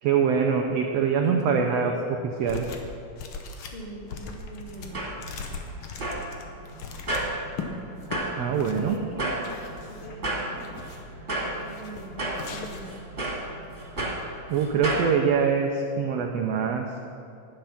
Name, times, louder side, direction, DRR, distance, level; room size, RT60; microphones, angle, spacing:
voice 1, 0.0-1.9 2.4-2.7 8.4-8.9 14.5-16.8, right 6 dB, 80° right, 3 dB, 1.5 m, -24 dB
voice 2, 1.2-2.0 3.5-5.1 8.4-9.6 9.9-10.7 11.5-12.9, right 1 dB, 25° left, -8 dB, 1.7 m, -41 dB
sound 1, 2.5-2.9 3.2-7.7 8.0-8.2 8.6-9.0 9.4-10.2 10.5-11.1 11.7-12.1 12.3-13.0, left 5 dB, 75° left, 1.2 m, -39 dB
sound 2, 4.6-15.1, right 1 dB, 25° right, 2.2 m, -33 dB
12.0 x 8.9 x 5.8 m, 2.5 s
omnidirectional pair, 3.7 m